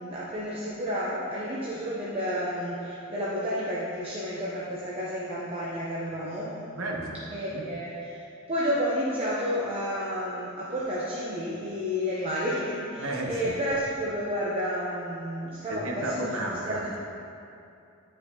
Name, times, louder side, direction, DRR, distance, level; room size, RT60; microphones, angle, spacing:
voice 1, 0.0-6.5 7.3-8.2 8.5-16.9, equal, 30° right, -8 dB, 0.8 m, -31 dB
voice 2, 6.7-7.1 7.5-7.7 13.0-13.5 15.7-17.0, right 1 dB, 80° right, -1 dB, 0.9 m, -32 dB
10.0 x 4.5 x 2.8 m, 2.6 s
head